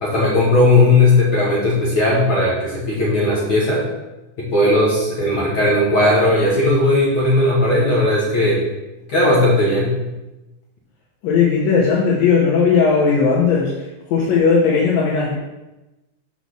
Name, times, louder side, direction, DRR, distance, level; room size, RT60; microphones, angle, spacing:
voice 1, 0.0-3.9 4.4-8.6 9.1-9.9, left 2 dB, 60° left, -5 dB, 1.4 m, -16 dB
voice 2, 11.2-13.7 14.1-15.3, left 5 dB, 80° left, -4 dB, 2.7 m, -16 dB
5.9 x 4.1 x 6.2 m, 1.0 s
omnidirectional pair, 4.0 m